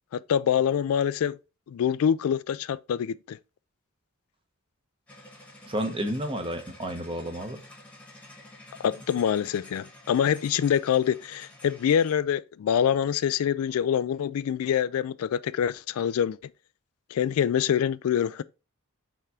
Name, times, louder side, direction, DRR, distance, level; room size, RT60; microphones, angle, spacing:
voice 1, 0.1-1.4 1.7-3.4 8.8-16.4 17.1-18.4, left 8 dB, 75° left, 0.3 m, -25 dB
sound 1, 5.1-12.2, left 1 dB, 5° left, 1.2 m, -50 dB
voice 2, 5.7-7.6, right 1 dB, 25° right, 1.0 m, -31 dB
5.5 x 3.6 x 4.8 m
head